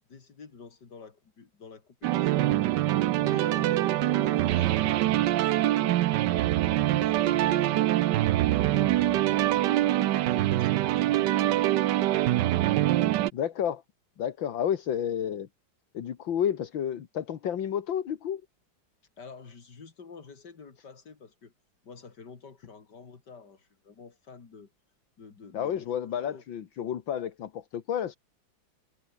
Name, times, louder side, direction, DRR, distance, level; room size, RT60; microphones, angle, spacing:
voice 1, 0.1-2.5 3.2-6.0 6.8-8.0 8.5-11.6 19.2-21.5 21.8-24.7 25.2-25.9 26.2-26.4, left 5 dB, 60° left, 3.3 m, -48 dB
sound 1, 2.0-13.3, right 14 dB, 70° right, 1.2 m, -24 dB
voice 2, 13.3-13.8 14.2-15.5 15.9-18.4 25.5-28.2, left 9 dB, 75° left, 2.2 m, -30 dB
omnidirectional pair, 2.1 m